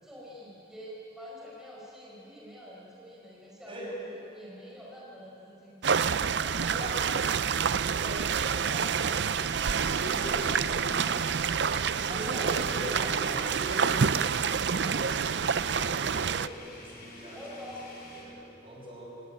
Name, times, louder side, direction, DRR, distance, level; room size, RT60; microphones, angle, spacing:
voice 1, 0.0-7.4 8.0-11.3 12.1-13.4 17.3-17.9, equal, 5° right, -5 dB, 5.4 m, -46 dB
sound 1, 4.7-4.8 5.3-5.4 7.4-18.2, left 2 dB, 50° left, 5.9 m, -49 dB
sound 2, 5.8-16.5, right 6 dB, 60° right, 0.5 m, -28 dB
voice 2, 9.8-10.6 12.1-17.4 18.0-19.1, equal, 25° right, -2 dB, 6.0 m, -41 dB
30.0 x 19.0 x 9.0 m, 3.0 s
head